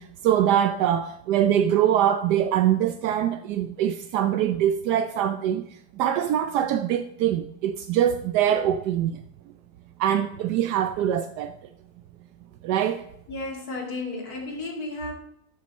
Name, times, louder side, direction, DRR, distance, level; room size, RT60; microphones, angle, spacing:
voice 1, 0.0-5.7 6.0-9.2 10.0-11.5 12.6-13.0, right 10 dB, 80° right, 1.2 m, -23 dB
voice 2, 13.3-15.1, left 2 dB, 65° left, 2.9 m, -33 dB
12.0 x 8.0 x 4.1 m
omnidirectional pair, 1.8 m